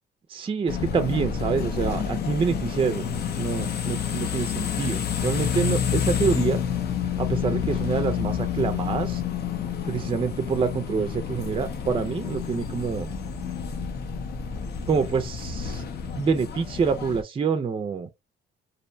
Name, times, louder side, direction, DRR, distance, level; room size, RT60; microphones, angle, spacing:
voice 1, 0.3-3.1 3.4-6.6 7.2-9.2 9.9-13.1 14.9-15.8 16.1-18.1, right 5 dB, 25° right, 0.4 m, -26 dB
sound 1, 0.7-17.2, left 7 dB, 55° left, 0.5 m, -29 dB
2.6 x 2.1 x 2.5 m
cardioid pair, 90°, 20 cm